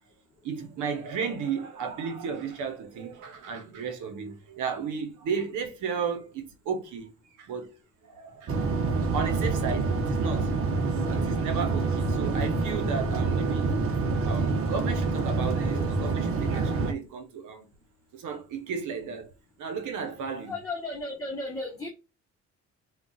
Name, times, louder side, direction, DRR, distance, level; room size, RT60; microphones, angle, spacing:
voice 1, 0.4-7.1 7.4-7.7 8.0-8.6 9.1-10.5 11.1-13.8 14.2-17.6 18.1-19.3 19.6-20.5, right 6 dB, 80° right, 0.9 m, -34 dB
sound 1, 8.5-16.9, right 3 dB, 50° right, 0.9 m, -27 dB
voice 2, 20.4-21.9, left 2 dB, 10° left, 1.1 m, -34 dB
3.8 x 2.4 x 2.3 m
cardioid pair, 90°, 30 cm